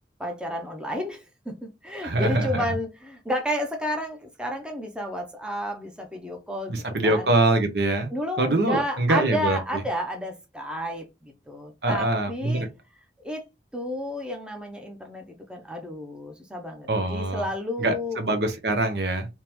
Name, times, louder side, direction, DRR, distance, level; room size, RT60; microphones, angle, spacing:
voice 1, 0.2-7.3 8.1-12.7 13.2-13.4 13.7-18.2, equal, 5° right, 0.6 m, -31 dB
voice 2, 2.0-2.6 6.7-8.1 8.4-9.6 11.8-12.7 16.9-17.5 17.8-19.3, right 2 dB, 75° right, 0.9 m, -24 dB
3.7 x 2.9 x 3.0 m
head